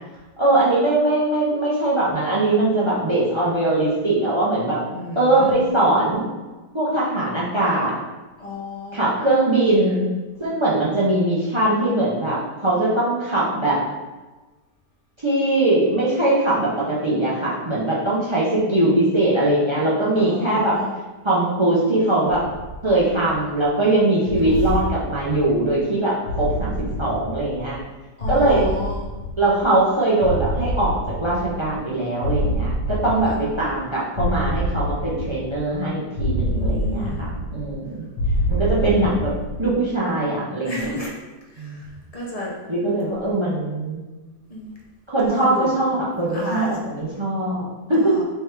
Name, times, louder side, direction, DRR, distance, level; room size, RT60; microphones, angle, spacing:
voice 1, 0.4-4.8 5.2-6.3 6.7-7.9 8.9-10.1 10.4-13.8 15.2-20.8 21.2-22.4 22.8-26.7 27.0-27.8 28.3-28.7 29.4-38.1 38.5-39.3 39.6-41.0 41.6-41.8 42.7-44.0 45.1-48.1, right 2 dB, 45° right, -6 dB, 0.3 m, -21 dB
voice 2, 4.9-5.6 8.4-9.1 20.1-20.9 28.2-29.0 33.3-33.4 36.4-37.2 40.6-41.1 41.5-41.8 42.1-42.5 44.5-44.7 45.3-45.7 46.3-46.7 48.0-48.2, left 1 dB, 35° left, -4 dB, 0.6 m, -32 dB
sound 1, 22.3-23.6 24.3-25.8 26.3-27.9 28.2-29.8 30.2-31.9 32.2-33.8 34.2-35.8 36.2-37.8 38.2-39.8, equal, 75° left, 1.3 m, -27 dB
3.5 x 3.3 x 4.5 m, 1.2 s
omnidirectional pair, 1.8 m